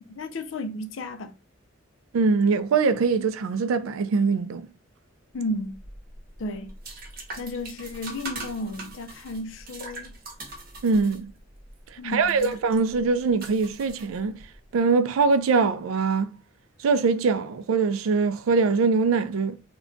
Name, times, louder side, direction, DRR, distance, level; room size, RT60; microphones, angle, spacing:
voice 1, 0.1-1.3 5.3-5.8 6.4-6.7 7.4-10.2 12.0-12.5, left 1 dB, 65° left, 0.5 m, -33 dB
voice 2, 2.1-4.7 10.8-11.3 12.0-14.4 14.7-16.4 16.8-19.6, right 4 dB, 85° right, 0.4 m, -22 dB
sound 1, 5.7-14.5, right 2 dB, 45° right, 0.8 m, -42 dB
2.2 x 2.2 x 3.7 m
head